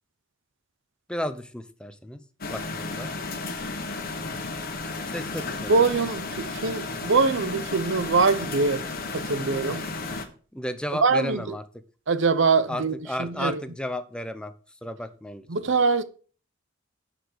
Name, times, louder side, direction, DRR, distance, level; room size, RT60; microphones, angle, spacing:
voice 1, 1.1-2.2 2.5-3.1 5.1-5.7 10.5-11.6 12.7-14.5 14.8-15.5, left 1 dB, 5° left, 0.7 m, -33 dB
sound 1, 2.4-10.3, left 3 dB, 50° left, 1.3 m, -33 dB
voice 2, 5.7-8.8 9.1-9.8 11.0-11.6 12.1-12.9 13.2-13.6 15.5-16.0, right 4 dB, 65° right, 0.7 m, -23 dB
9.7 x 5.1 x 6.4 m
head